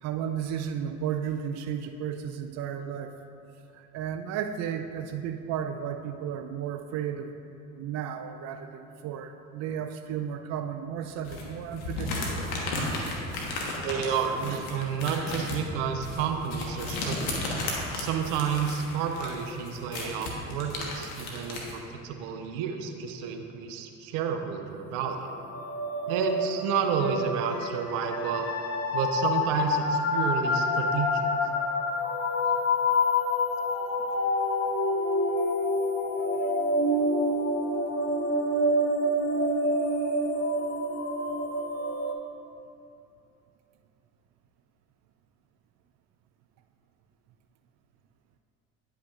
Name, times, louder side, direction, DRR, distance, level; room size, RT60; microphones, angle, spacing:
voice 1, 0.0-3.1 3.7-7.3 7.8-12.4 14.4-14.7 21.5-21.6 36.3-36.5 40.0-40.2, right 8 dB, 40° right, 6 dB, 0.4 m, -34 dB
sound 1, 11.2-21.7, left 2 dB, 65° left, 1.4 m, -34 dB
voice 2, 13.8-14.4 14.7-17.4 17.9-25.3 26.1-28.5 28.9-31.2, right 7 dB, 70° right, 5 dB, 0.8 m, -30 dB
sound 2, 25.3-42.1, left 1 dB, 35° left, 0.9 m, -27 dB
9.6 x 5.7 x 2.5 m, 2.6 s
hypercardioid pair, 60°, 41 cm